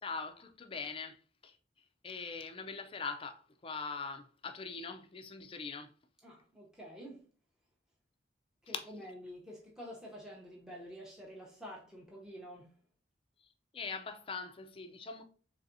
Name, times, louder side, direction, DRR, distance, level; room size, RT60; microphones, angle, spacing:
voice 1, 0.0-1.6 2.0-5.9 8.7-8.8 13.4-13.5 13.7-15.2, left 4 dB, 30° left, 0.4 m, -42 dB
voice 2, 6.2-7.3 8.6-12.8, equal, 5° right, 0.7 m, -48 dB
4.1 x 3.3 x 2.6 m
head